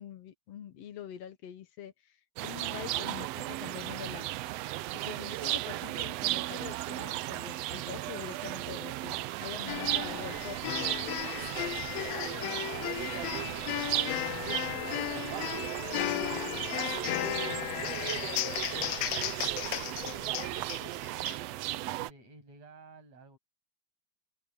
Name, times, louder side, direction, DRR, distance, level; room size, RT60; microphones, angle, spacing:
voice 1, 0.0-2.2 2.4-4.3 4.9-10.6 21.3-21.8, left 9 dB, 65° left, 2.0 m, -45 dB
sound 1, 2.4-22.1, right 16 dB, 85° right, 1.4 m, -35 dB
sound 2, 9.7-21.4, left 17 dB, 85° left, 1.4 m, -35 dB
voice 2, 21.8-23.4, right 3 dB, 60° right, 9.0 m, -56 dB
omnidirectional pair, 3.5 m